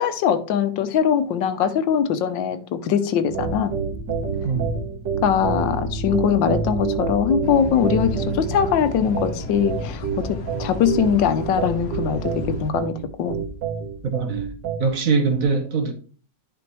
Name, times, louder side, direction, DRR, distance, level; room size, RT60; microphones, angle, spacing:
voice 1, 0.0-3.7 5.2-13.4, left 8 dB, 90° left, 1.5 m, -22 dB
sound 1, 3.3-14.9, right 5 dB, 70° right, 2.1 m, -28 dB
voice 2, 4.4-5.1 14.0-14.5 14.8-15.9, right 4 dB, 55° right, 1.2 m, -23 dB
sound 2, 7.4-12.7, left 2 dB, 55° left, 1.4 m, -34 dB
10.5 x 5.0 x 3.1 m
omnidirectional pair, 2.0 m